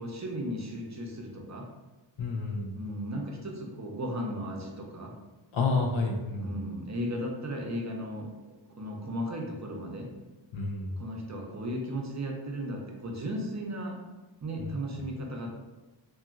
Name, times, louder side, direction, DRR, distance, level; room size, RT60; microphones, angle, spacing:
voice 1, 0.0-1.7 2.7-5.1 6.4-8.3 8.8-10.1 11.0-14.0 14.4-15.5, equal, 35° right, 0 dB, 0.5 m, -35 dB
voice 2, 2.2-2.7 5.5-6.5 10.5-11.0 14.6-14.7, left 3 dB, 75° left, 0 dB, 0.6 m, -29 dB
2.8 x 2.5 x 2.4 m, 1.2 s
wide cardioid pair, 60°, 48 cm